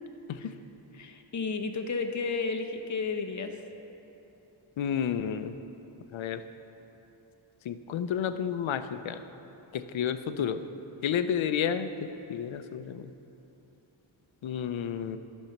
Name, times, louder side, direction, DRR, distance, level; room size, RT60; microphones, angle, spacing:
voice 1, 0.9-3.6, left 4 dB, 35° left, 5 dB, 0.8 m, -32 dB
voice 2, 4.8-5.5 6.1-6.4 7.7-9.2 9.7-10.6 11.0-11.9 12.3-13.0 14.4-15.2, left 8 dB, 70° left, 11 dB, 0.6 m, -30 dB
12.0 x 5.5 x 5.9 m, 2.9 s
cardioid pair, 70°, 48 cm